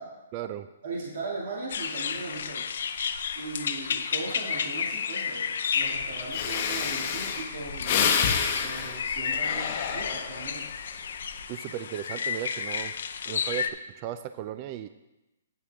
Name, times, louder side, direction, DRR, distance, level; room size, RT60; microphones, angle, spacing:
voice 1, 0.3-0.7 11.5-12.9 13.3-14.9, right 11 dB, 35° right, 11 dB, 0.3 m, -36 dB
voice 2, 0.8-2.7 3.4-8.1 8.6-10.7, right 3 dB, 55° right, -3 dB, 2.0 m, -38 dB
sound 1, 1.7-13.7, left 7 dB, 65° left, 0.5 m, -32 dB
Breathing, 6.0-6.1 6.3-10.6 11.0-11.4, left 7 dB, 40° left, 1.0 m, -28 dB
9.0 x 8.3 x 3.4 m, 0.97 s
hypercardioid pair, 150°, 0 cm